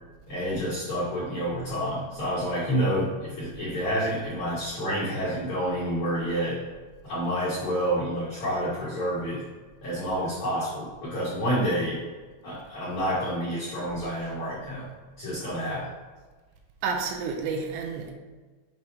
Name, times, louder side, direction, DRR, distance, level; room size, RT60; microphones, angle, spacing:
voice 1, 0.3-6.6 7.0-9.4 9.8-12.0 12.4-14.9 15.2-15.9, equal, 65° left, -10 dB, 1.8 m, -28 dB
voice 2, 16.8-18.1, right 5 dB, 85° right, 3 dB, 3.3 m, -30 dB
7.9 x 2.9 x 4.9 m, 1.3 s
omnidirectional pair, 5.8 m